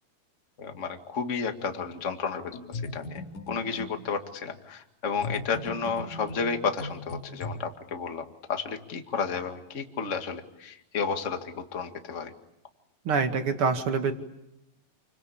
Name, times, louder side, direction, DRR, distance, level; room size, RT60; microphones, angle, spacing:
voice 1, 0.6-12.3, left 5 dB, 30° left, 5 dB, 1.5 m, -32 dB
sound 1, 2.5-4.0 5.2-7.5, left 2 dB, 85° left, 5.5 m, -38 dB
voice 2, 13.1-14.1, right 5 dB, 40° right, 6 dB, 2.5 m, -25 dB
29.0 x 23.5 x 8.7 m, 0.85 s
omnidirectional pair, 4.4 m